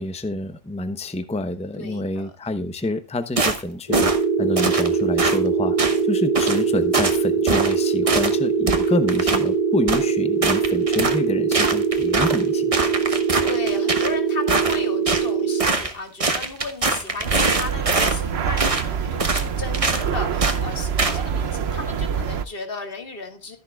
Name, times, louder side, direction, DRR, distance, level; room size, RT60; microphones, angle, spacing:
voice 1, 0.0-4.1 4.4-12.7, left 1 dB, 5° left, 10 dB, 0.7 m, -27 dB
voice 2, 1.8-2.3 13.4-23.6, left 4 dB, 60° left, 5 dB, 2.0 m, -35 dB
sound 1, 3.4-3.6 3.9-4.2 4.6-4.9 5.2-5.4 5.8-6.0 6.4-6.6 6.9-7.2 7.5-7.8 8.1-8.3 8.7-9.4 9.9-10.0 10.4-11.2 11.5-12.4 12.7-14.1 14.5-15.3 15.6-15.9 16.2-18.2 18.6-18.9 19.2-19.5 19.7-20.0 20.4-20.6 21.0-21.2, right 3 dB, 35° right, 1.1 m, -23 dB
sound 2, 3.9-15.7, right 5 dB, 35° left, 1.4 m, -22 dB
sound 3, 17.2-22.5, right 7 dB, 80° right, 1.0 m, -26 dB
13.5 x 10.5 x 2.3 m, 0.30 s
omnidirectional pair, 1.1 m